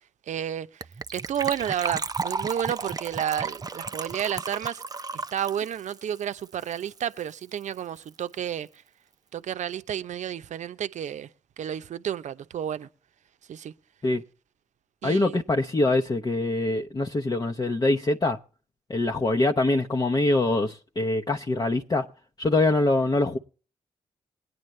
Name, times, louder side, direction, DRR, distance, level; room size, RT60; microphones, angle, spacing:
voice 1, 0.3-0.8 1.1-4.8 5.1-8.7 9.3-11.3 11.6-12.9 13.5-13.7 15.0-15.4, right 9 dB, 65° right, 0.7 m, -31 dB
Gurgling / Trickle dribble / Fill (with liquid), 0.8-7.0 7.3-7.4 7.6-7.8 8.1-8.2, right 4 dB, 30° right, 0.5 m, -34 dB
voice 2, 15.0-18.4 18.9-22.1 22.4-23.4, left 2 dB, 30° left, 0.8 m, -24 dB
20.5 x 9.4 x 3.3 m
supercardioid pair, 45°, 13 cm